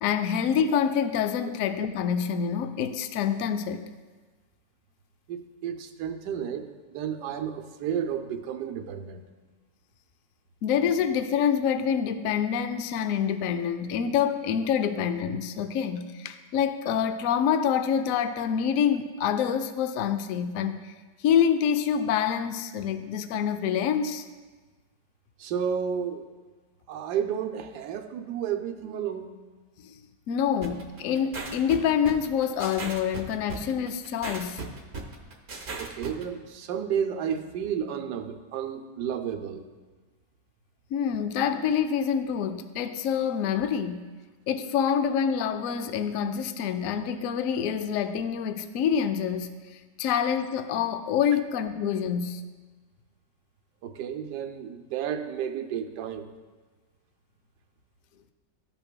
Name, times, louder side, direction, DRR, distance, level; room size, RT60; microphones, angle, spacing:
voice 1, 0.0-3.9 10.6-20.9 21.2-24.2 29.8-30.0 30.3-34.6 40.9-44.1 44.5-49.5 50.0-52.4, left 8 dB, 70° left, 8 dB, 0.8 m, -26 dB
voice 2, 5.3-6.7 6.9-9.2 25.4-26.2 26.9-29.3 35.8-39.6 53.8-56.3, right 8 dB, 75° right, 6 dB, 1.2 m, -32 dB
sound 1, 30.6-36.2, right 3 dB, 45° right, 1.0 m, -37 dB
14.0 x 5.8 x 2.2 m, 1.3 s
omnidirectional pair, 1.8 m